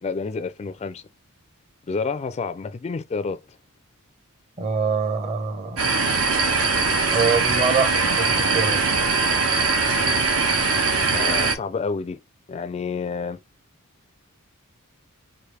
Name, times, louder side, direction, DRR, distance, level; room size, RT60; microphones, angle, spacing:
voice 1, 0.0-1.0 1.9-3.4 11.1-12.2 12.5-13.4, left 4 dB, 30° left, 0.3 m, -29 dB
voice 2, 4.6-5.9 7.1-8.8, right 5 dB, 30° right, 0.9 m, -24 dB
sound 1, 5.8-11.5, right 4 dB, 75° right, 1.2 m, -21 dB
4.9 x 2.5 x 3.2 m
head